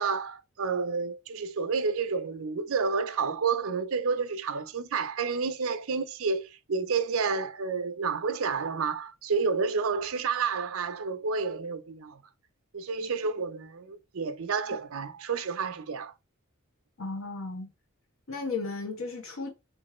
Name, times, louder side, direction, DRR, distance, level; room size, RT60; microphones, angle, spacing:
voice 1, 0.0-12.2 12.7-16.1, right 5 dB, 80° right, 0.6 m, -30 dB
voice 2, 17.0-17.7 18.3-19.5, left 3 dB, 75° left, 1.4 m, -34 dB
4.4 x 3.3 x 3.1 m
head